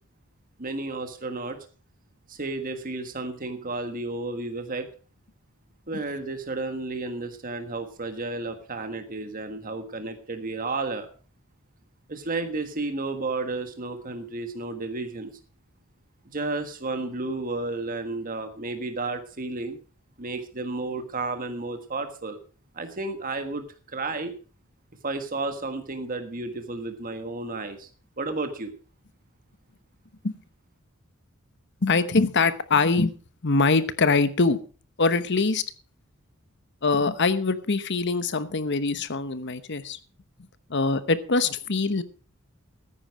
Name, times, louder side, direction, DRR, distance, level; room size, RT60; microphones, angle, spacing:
voice 1, 0.6-1.6 2.3-4.9 5.9-11.1 12.1-15.3 16.3-19.8 20.2-22.4 22.7-24.3 25.0-27.9 28.2-28.7, right 3 dB, 40° right, 7 dB, 1.5 m, -32 dB
voice 2, 31.8-33.1 33.4-34.6 35.0-35.6 36.8-40.0 40.7-42.0, left 3 dB, 55° left, 12 dB, 1.0 m, -23 dB
14.5 x 9.9 x 4.8 m, 0.38 s
head